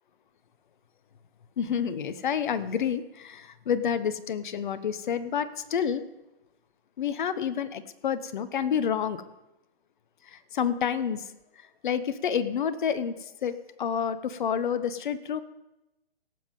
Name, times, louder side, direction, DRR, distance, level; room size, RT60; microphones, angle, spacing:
voice 1, 1.6-6.0 7.0-9.2 10.2-15.4, left 8 dB, 50° left, 13 dB, 1.0 m, -29 dB
17.5 x 7.5 x 5.3 m, 0.94 s
figure-of-eight pair, 135°, 32 cm